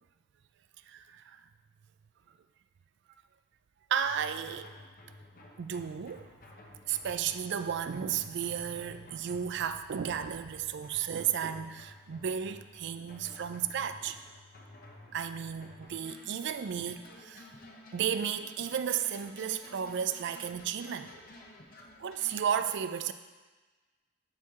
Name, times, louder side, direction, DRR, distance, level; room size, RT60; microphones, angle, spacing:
voice 1, 0.9-1.4 3.9-4.7 5.6-6.3 6.9-14.2 15.1-17.5 17.9-21.1 22.0-23.1, right 8 dB, 55° right, 11 dB, 0.3 m, -33 dB
sound 1, 4.0-22.5, left 2 dB, 40° left, 0.8 m, -53 dB
11.5 x 4.6 x 3.6 m, 1.3 s
head